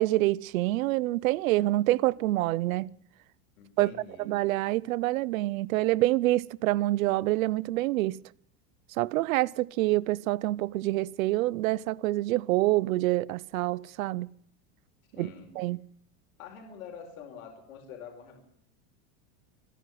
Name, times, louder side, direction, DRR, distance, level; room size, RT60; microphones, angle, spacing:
voice 1, 0.0-2.9 3.8-3.9 4.3-8.2 9.0-14.3 15.2-15.3 15.6-15.8, right 17 dB, 75° right, 0.8 m, -26 dB
voice 2, 3.6-4.4 15.1-15.5 16.4-18.4, left 7 dB, 80° left, 4.9 m, -46 dB
25.5 x 11.0 x 9.4 m
supercardioid pair, 175°, 41 cm